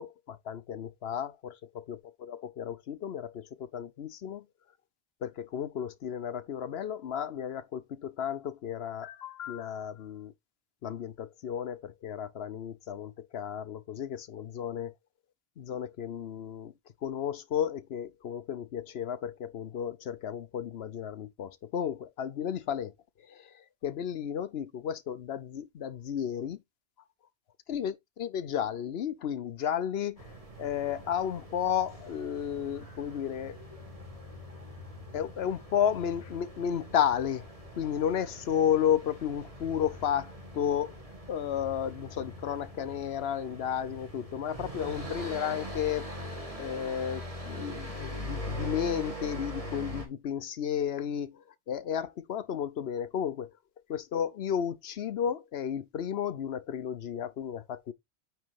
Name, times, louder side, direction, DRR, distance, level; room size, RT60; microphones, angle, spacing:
voice 1, 0.0-4.5 5.2-10.3 10.8-14.9 15.6-16.7 17.0-22.9 23.2-26.6 27.7-33.6 35.1-37.5 37.8-41.0 41.3-46.1 46.6-53.5 53.9-57.9, left 9 dB, 75° left, 1.0 m, -33 dB
sound 1, 30.2-50.1, equal, 35° right, 2.4 m, -42 dB
9.3 x 3.2 x 4.7 m
omnidirectional pair, 1.1 m